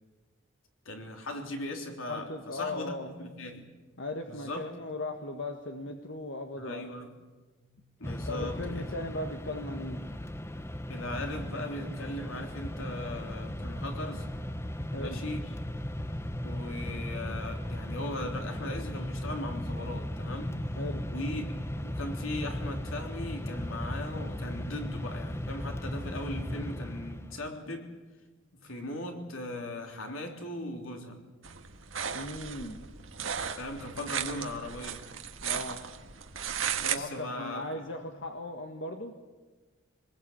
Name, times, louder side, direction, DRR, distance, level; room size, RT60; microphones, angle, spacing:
voice 1, 0.9-3.7 4.3-4.8 6.6-7.1 7.6-7.7 8.0-8.9 10.9-14.3 15.0-15.6 16.4-20.6 21.1-21.5 21.8-27.9 28.5-31.2 33.6-35.1 36.8-37.7, left 1 dB, 90° left, 3.5 m, -39 dB
voice 2, 2.1-3.1 4.0-6.8 8.3-10.0 14.9-15.2 20.8-21.0 32.1-32.8 35.4-35.8 36.9-39.1, left 2 dB, 65° left, 1.7 m, -38 dB
Mechanisms, 8.0-27.5, left 1 dB, 15° left, 0.8 m, -36 dB
sound 1, 31.4-36.9, right 8 dB, 75° right, 1.6 m, -36 dB
25.0 x 20.5 x 8.6 m
head